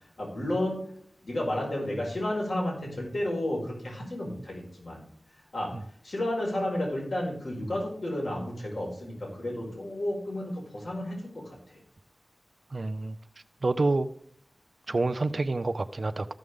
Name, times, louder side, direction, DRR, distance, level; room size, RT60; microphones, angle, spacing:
voice 1, 0.2-0.8 1.2-5.0 5.5-5.8 6.0-11.8, left 1 dB, 70° left, -2 dB, 4.8 m, -32 dB
voice 2, 12.7-13.2 13.6-14.1 14.9-16.3, right 2 dB, 55° right, 10 dB, 0.6 m, -27 dB
14.0 x 6.5 x 3.6 m, 0.66 s
wide cardioid pair, 65°, 0 cm